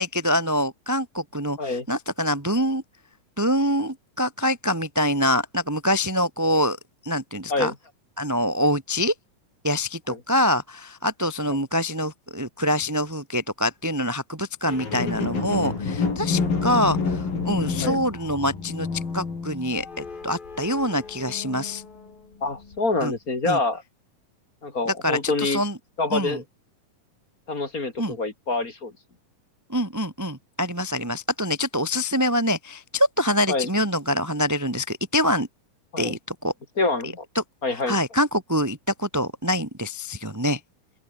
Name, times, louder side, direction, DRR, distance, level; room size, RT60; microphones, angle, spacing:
voice 1, 0.0-2.8 3.4-6.8 7.0-7.7 8.2-9.1 9.6-18.9 19.1-21.8 23.0-23.1 23.4-23.6 24.9-25.7 26.1-26.4 28.0-28.1 29.7-35.5 36.0-36.5 37.3-37.4 37.9-40.6, left 1 dB, 10° right, 0.9 m, -25 dB
sound 1, 14.7-22.1 22.7-22.8, left 4 dB, 90° left, 8.4 m, -29 dB
voice 2, 22.4-23.8 24.6-25.6 26.0-26.4 27.5-28.9 33.5-33.7 35.9-36.2 36.8-37.2 37.6-38.0, left 3 dB, 25° left, 2.8 m, -26 dB
open air
omnidirectional pair, 4.0 m